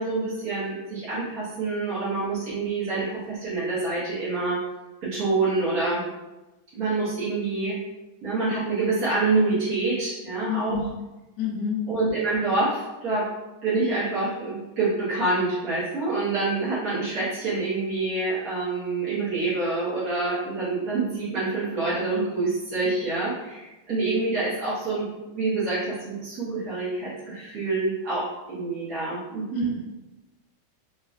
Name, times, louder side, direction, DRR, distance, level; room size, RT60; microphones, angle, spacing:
voice 1, 0.0-4.6 5.0-6.0 6.7-7.8 8.2-10.8 11.9-13.3 13.6-25.1 25.3-29.7, right 3 dB, 55° right, -12 dB, 1.4 m, -26 dB
voice 2, 10.5-10.9 11.4-11.8 29.5-29.8, left 6 dB, 70° left, -1 dB, 1.1 m, -28 dB
4.1 x 2.3 x 2.3 m, 1.1 s
omnidirectional pair, 2.2 m